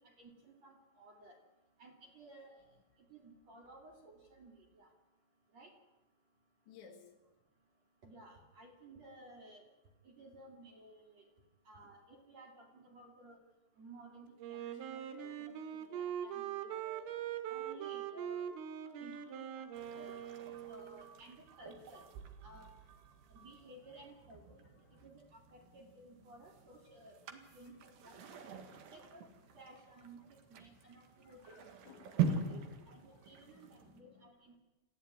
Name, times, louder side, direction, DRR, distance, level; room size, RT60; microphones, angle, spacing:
voice 1, 0.0-1.4 1.8-2.5 3.1-4.9 5.5-5.7 8.0-9.6 10.0-11.2 11.7-13.4 13.8-15.5 15.9-17.1 17.5-18.4 18.8-19.5 19.7-20.2 20.7-22.0 22.4-22.7 23.3-24.6 25.0-28.2 28.9-29.3 29.5-31.6 32.4-32.6 32.9-34.5, right 2 dB, 40° right, 1 dB, 3.1 m, -56 dB
voice 2, 6.7-7.1 14.6-15.5 16.4-16.5 19.9-20.2 24.8-25.0 28.7-28.9 30.8-30.9 31.2-32.5 33.1-34.2, left 7 dB, 65° left, 3 dB, 4.4 m, -62 dB
Wind instrument woodwind instrument, 14.4-21.1, right 9 dB, 90° right, 4.1 m, -42 dB
sound 1, 19.1-23.9, right 8 dB, 75° right, 3.9 m, -59 dB
sound 2, 19.7-34.0, right 6 dB, 55° right, 3.0 m, -44 dB
28.0 x 14.5 x 9.7 m, 1.1 s
omnidirectional pair, 5.7 m